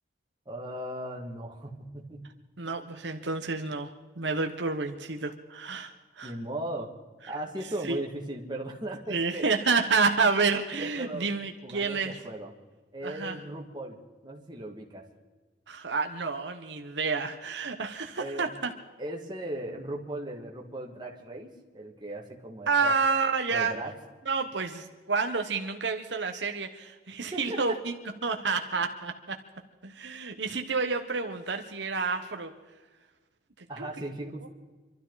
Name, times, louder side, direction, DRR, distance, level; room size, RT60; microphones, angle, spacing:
voice 1, 0.5-2.2 6.2-6.9 7.3-9.5 10.8-11.3 11.6-12.5 12.9-14.0 14.2-15.0 18.2-18.5 19.0-22.9 23.5-23.9 27.3-27.8 33.7-34.5, right 1 dB, 25° right, 0 dB, 2.1 m, -37 dB
voice 2, 2.6-6.3 7.2-7.3 7.8-8.0 9.1-12.2 13.0-13.4 15.7-18.7 22.7-23.7 24.3-27.9 28.2-29.4 29.8-32.5 33.8-33.9 34.4-34.5, right 4 dB, 70° right, 5 dB, 1.2 m, -29 dB
26.0 x 13.0 x 4.1 m, 1.3 s
head